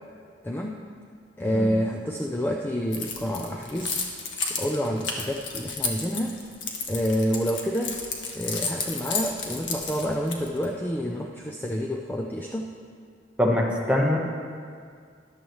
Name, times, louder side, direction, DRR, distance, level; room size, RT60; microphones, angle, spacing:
voice 1, 0.4-0.8 1.4-4.0 4.6-6.4 6.9-8.0 8.3-12.7, equal, 10° left, 1 dB, 0.5 m, -28 dB
Keys jangling, 2.9-10.7, left 5 dB, 80° left, 1.3 m, -32 dB
voice 2, 13.4-14.2, left 1 dB, 5° right, -1 dB, 1.2 m, -23 dB
13.5 x 11.0 x 3.1 m, 2.1 s
head